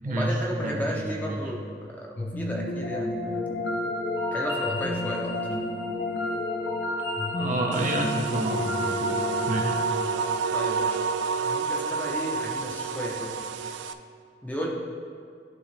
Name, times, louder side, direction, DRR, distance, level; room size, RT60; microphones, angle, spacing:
voice 1, 0.0-3.6 4.3-5.4 10.5-11.0 11.4-13.4 14.4-14.7, equal, 10° left, -2 dB, 0.8 m, -33 dB
voice 2, 0.6-1.4 7.3-9.2 9.5-9.8, right 2 dB, 45° right, 1 dB, 0.6 m, -29 dB
sound 1, 2.2-11.3, left 2 dB, 70° left, 0.8 m, -31 dB
sound 2, 7.7-13.9, right 5 dB, 80° right, 0.3 m, -29 dB
11.0 x 3.8 x 3.3 m, 2.1 s
head